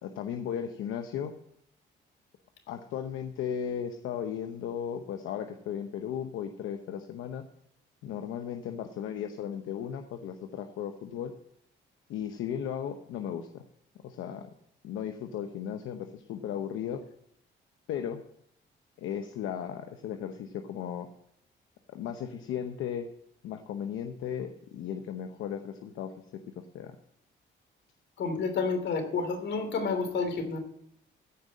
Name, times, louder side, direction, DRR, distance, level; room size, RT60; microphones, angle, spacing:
voice 1, 0.0-1.4 2.7-7.5 8.0-11.3 12.1-13.6 14.0-14.5 14.8-17.0 17.9-18.2 19.0-21.1 21.9-23.1 23.4-26.4 26.7-27.0, left 8 dB, 85° left, 6 dB, 0.9 m, -36 dB
voice 2, 28.2-30.6, left 4 dB, 65° left, 6 dB, 3.1 m, -30 dB
14.5 x 5.6 x 7.4 m, 0.71 s
cardioid pair, 90°, 20 cm